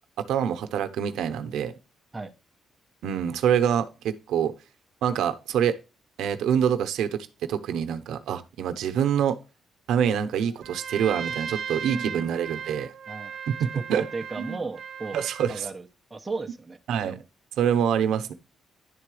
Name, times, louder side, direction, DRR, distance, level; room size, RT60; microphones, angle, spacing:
voice 1, 0.2-1.7 3.0-4.5 5.0-5.7 6.2-9.4 9.9-12.9 13.5-14.1 14.4-14.6 15.1-15.7 16.9-17.2 17.6-18.3, right 8 dB, 85° right, 9 dB, 0.8 m, -26 dB
Trumpet, 10.6-15.6, right 7 dB, 50° right, 0.9 m, -37 dB
voice 2, 11.9-12.4 13.1-16.8 17.0-17.2, right 3 dB, 15° right, 3 dB, 0.8 m, -36 dB
10.5 x 3.8 x 4.8 m, 0.29 s
cardioid pair, 165°, 0 cm